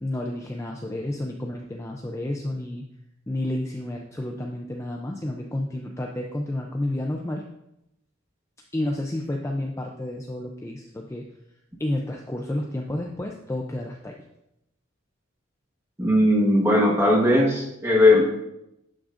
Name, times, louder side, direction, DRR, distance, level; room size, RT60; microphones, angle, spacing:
voice 1, 0.0-2.9 3.3-7.4 8.7-11.3 11.8-14.2, left 1 dB, 15° left, 1 dB, 0.4 m, -30 dB
voice 2, 16.0-18.2, left 1 dB, 15° right, -3 dB, 1.4 m, -18 dB
11.0 x 6.1 x 2.5 m, 0.85 s
head